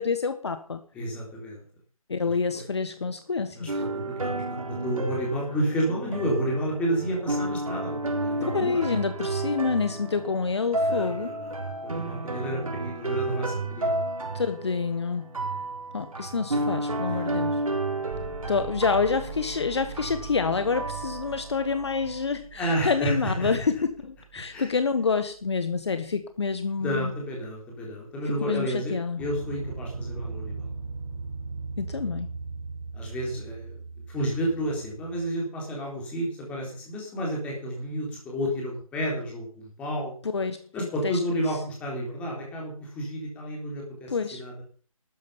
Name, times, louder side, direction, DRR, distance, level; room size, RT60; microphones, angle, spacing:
voice 1, 0.0-0.8 2.1-3.8 8.5-11.3 14.3-15.4 15.9-17.6 18.5-27.1 28.5-29.2 31.8-32.3 40.3-41.4 44.1-44.4, left 5 dB, 50° left, 10 dB, 1.3 m, -28 dB
voice 2, 0.9-1.6 2.2-2.6 3.6-8.8 10.9-14.0 17.0-17.4 22.5-23.6 24.5-24.7 26.8-30.7 32.9-33.8 34.1-40.1 40.7-44.6, equal, 5° left, -2 dB, 3.8 m, -31 dB
sound 1, 3.7-22.2, right 2 dB, 70° right, 3.7 m, -32 dB
sound 2, 18.1-25.9 29.2-35.3, right 4 dB, 25° right, 2.5 m, -40 dB
13.0 x 9.7 x 7.2 m, 0.43 s
figure-of-eight pair, 165°, 18 cm